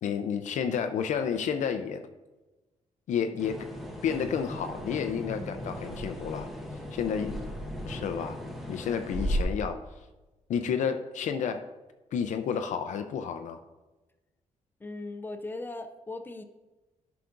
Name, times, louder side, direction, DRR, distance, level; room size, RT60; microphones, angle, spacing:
voice 1, 0.0-2.0 3.1-3.7 4.0-6.5 6.9-7.4 7.9-8.4 8.7-9.8 10.5-11.6 12.1-13.6, left 7 dB, 75° left, 7 dB, 0.5 m, -30 dB
sound 1, 3.4-9.4, equal, ahead, 0.8 m, -36 dB
voice 2, 14.8-16.4, left 2 dB, 15° left, 7 dB, 0.4 m, -38 dB
11.5 x 5.8 x 2.5 m, 1.1 s
wide cardioid pair, 170°, 13 cm